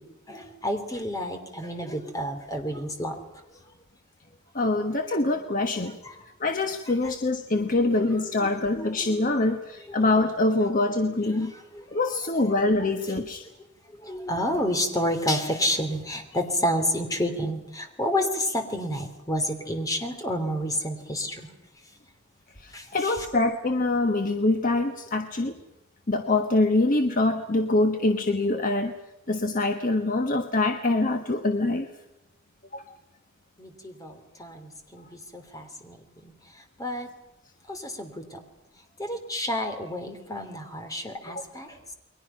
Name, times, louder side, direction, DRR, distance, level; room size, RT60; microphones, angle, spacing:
voice 1, 0.0-3.4 6.0-6.2 7.0-7.1 7.9-9.1 9.8-10.0 11.3-12.1 12.4-12.5 12.8-12.9 13.9-21.5 22.7-23.2 33.6-37.1 37.7-38.4 39.0-41.8, equal, 15° left, 5 dB, 3.2 m, -30 dB
voice 2, 4.5-6.0 6.4-11.5 11.9-13.4 22.6-25.5 26.1-28.9 29.3-31.9 32.7-32.8, left 2 dB, 40° left, 6 dB, 1.3 m, -24 dB
30.0 x 22.0 x 5.8 m, 0.92 s
head